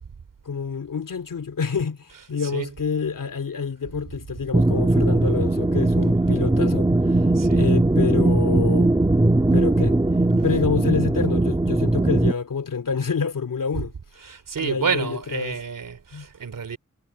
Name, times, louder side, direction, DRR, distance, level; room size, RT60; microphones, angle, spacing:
voice 1, 0.4-6.9 7.5-8.9 9.5-10.0 10.4-13.9 14.6-15.6 16.1-16.3, left 5 dB, 85° left, 2.8 m, -27 dB
voice 2, 2.4-2.8 7.3-7.7 14.2-16.8, right 6 dB, 80° right, 3.0 m, -29 dB
sound 1, 4.5-12.3, right 2 dB, 15° right, 1.4 m, -19 dB
wide cardioid pair, 80°, 32 cm